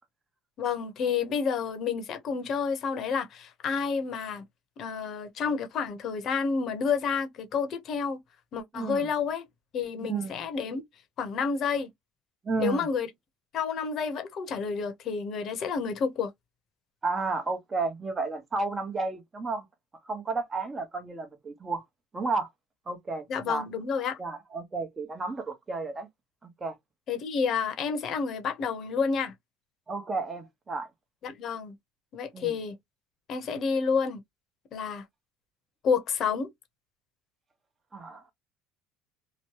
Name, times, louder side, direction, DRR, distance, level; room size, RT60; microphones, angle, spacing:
voice 1, 0.6-4.4 4.8-8.2 8.5-9.5 9.7-10.8 11.2-11.9 12.6-13.1 13.5-16.3 23.3-24.2 27.1-29.3 31.2-31.7 32.1-32.8 33.3-34.2 34.7-35.0 35.8-36.5, left 5 dB, 50° left, 0.9 m, -29 dB
voice 2, 8.7-9.1 10.0-10.4 12.4-12.9 17.0-19.7 20.0-21.8 22.1-22.5 22.9-23.7 24.2-26.1 26.4-26.7 29.9-30.9 32.3-32.5 37.9-38.2, right 3 dB, 20° right, 0.9 m, -32 dB
3.0 x 2.1 x 3.0 m
supercardioid pair, 110°, 0 cm